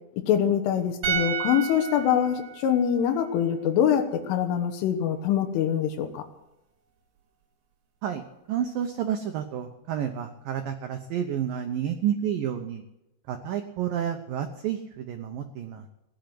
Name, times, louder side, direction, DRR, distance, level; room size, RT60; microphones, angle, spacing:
voice 1, 0.3-6.3, left 9 dB, 85° left, 5 dB, 3.8 m, -24 dB
sound 1, 1.0-4.3 4.5-4.7, right 7 dB, 50° right, 3.3 m, -33 dB
voice 2, 8.5-12.8 13.3-15.8, right 9 dB, 85° right, 6 dB, 1.9 m, -30 dB
17.0 x 10.5 x 7.8 m, 0.90 s
omnidirectional pair, 5.5 m